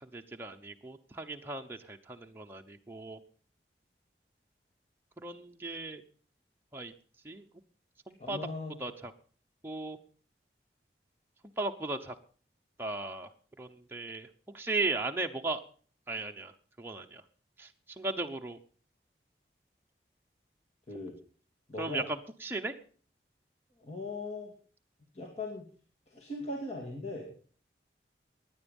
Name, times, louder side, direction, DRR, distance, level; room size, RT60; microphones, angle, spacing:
voice 1, 0.0-3.2 5.2-6.0 6.7-6.9 7.2-7.4 8.1-8.4 8.8-9.1 9.6-10.0 11.6-12.2 12.8-13.3 13.6-14.3 14.5-15.6 16.1-16.5 16.8-17.2 17.6-17.7 18.0-18.6 21.8-22.8, right 2 dB, 10° right, 3 dB, 0.8 m, -36 dB
voice 2, 8.2-8.8 20.9-21.1 21.7-22.1 23.8-24.5 25.1-25.6 26.1-27.3, left 2 dB, 40° left, -2 dB, 2.4 m, -39 dB
17.0 x 10.0 x 5.3 m, 0.43 s
head